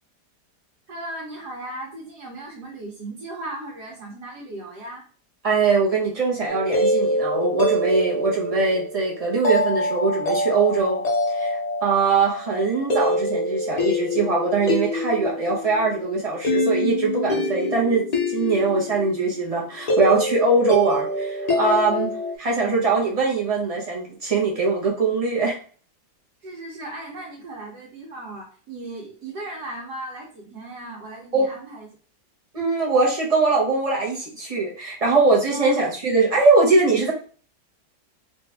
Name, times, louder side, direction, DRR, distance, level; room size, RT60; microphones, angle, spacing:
voice 1, 0.9-5.0 26.4-31.9 35.5-35.7, right 2 dB, 75° right, -3 dB, 1.5 m, -36 dB
voice 2, 5.4-11.0 11.3-18.0 18.3-22.1 22.4-25.6 31.3-31.5 32.5-37.1, right 3 dB, 30° right, -3 dB, 0.7 m, -21 dB
sound 1, 6.5-22.3, left 1 dB, 45° left, 0.5 m, -25 dB
3.1 x 2.4 x 3.4 m, 0.42 s
omnidirectional pair, 1.8 m